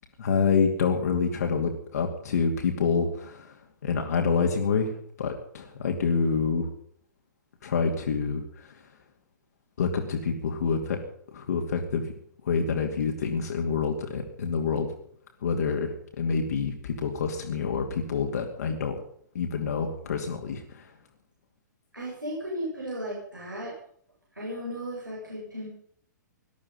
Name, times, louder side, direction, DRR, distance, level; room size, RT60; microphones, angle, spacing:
voice 1, 0.2-3.5 3.8-4.9 5.2-6.7 7.6-8.7 9.8-11.0 11.3-12.1 12.4-14.9 15.4-19.0 19.3-20.9, left 5 dB, 60° left, 2 dB, 2.4 m, -27 dB
voice 2, 21.9-23.8 24.3-25.7, equal, 85° right, -4 dB, 7.6 m, -35 dB
19.0 x 12.5 x 5.5 m, 0.63 s
figure-of-eight pair, 115°, 10 cm